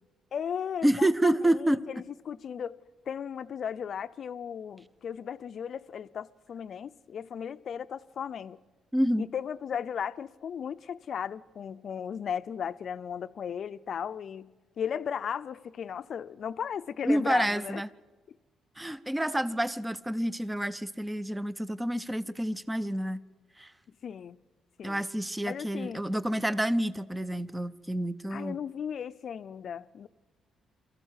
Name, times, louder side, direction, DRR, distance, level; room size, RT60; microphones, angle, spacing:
voice 1, 0.3-2.8 3.1-8.6 9.2-14.5 14.8-17.8 24.0-24.4 24.8-25.1 25.4-26.0 28.3-30.1, left 8 dB, 55° left, 0.6 m, -36 dB
voice 2, 0.8-1.8 8.9-9.3 17.0-17.9 18.8-23.2 23.6-23.7 24.8-28.6, right 1 dB, 10° right, 0.6 m, -28 dB
23.0 x 14.5 x 8.2 m
cardioid pair, 90°, 0 cm